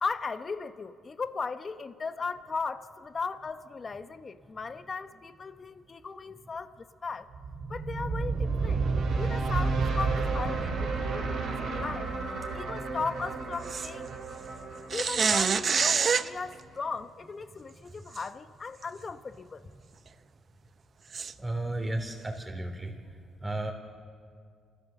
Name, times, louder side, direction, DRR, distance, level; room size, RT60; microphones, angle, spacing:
voice 1, 0.0-7.3 7.7-8.8 9.2-12.1 12.5-14.1 14.9-19.6, left 4 dB, 35° left, 11 dB, 0.9 m, -37 dB
sound 1, 7.3-16.5, right 4 dB, 70° right, 3.9 m, -31 dB
sound 2, 13.7-13.9 14.9-16.3 18.1-18.2 18.8-18.9 21.1-21.3, right 6 dB, 45° right, 0.6 m, -26 dB
voice 2, 21.4-22.9 23.4-23.7, right 1 dB, 15° right, 2 dB, 3.4 m, -33 dB
28.0 x 13.5 x 7.1 m, 2.2 s
cardioid pair, 90°, 0 cm